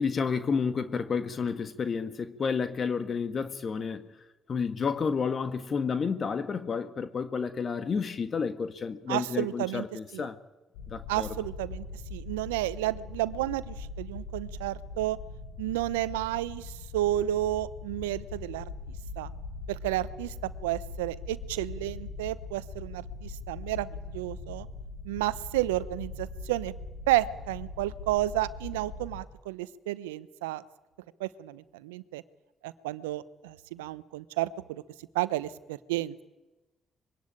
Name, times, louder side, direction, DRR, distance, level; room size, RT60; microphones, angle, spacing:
voice 1, 0.0-4.1 4.5-10.4 10.9-11.4, left 5 dB, 50° left, 1.7 m, -30 dB
voice 2, 9.1-9.8 10.1-10.3 11.1-11.9 12.1-15.2 15.6-18.6 19.2-19.3 19.7-20.3 20.6-24.7 25.0-26.7 27.1-30.6 31.2-32.2 32.6-34.8 35.1-36.2, right 15 dB, 85° right, 0.8 m, -31 dB
sound 1, 10.7-29.2, left 3 dB, 80° left, 2.9 m, -41 dB
25.0 x 23.0 x 9.0 m
hypercardioid pair, 45°, 0 cm